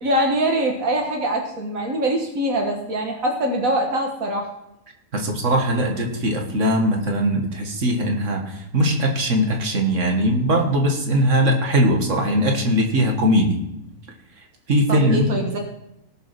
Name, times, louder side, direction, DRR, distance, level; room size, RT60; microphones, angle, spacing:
voice 1, 0.0-4.5 14.9-15.6, right 1 dB, 85° right, 2 dB, 2.0 m, -23 dB
voice 2, 5.1-13.6 14.7-15.3, equal, 65° right, 2 dB, 2.3 m, -20 dB
18.5 x 6.2 x 6.1 m, 0.86 s
omnidirectional pair, 1.4 m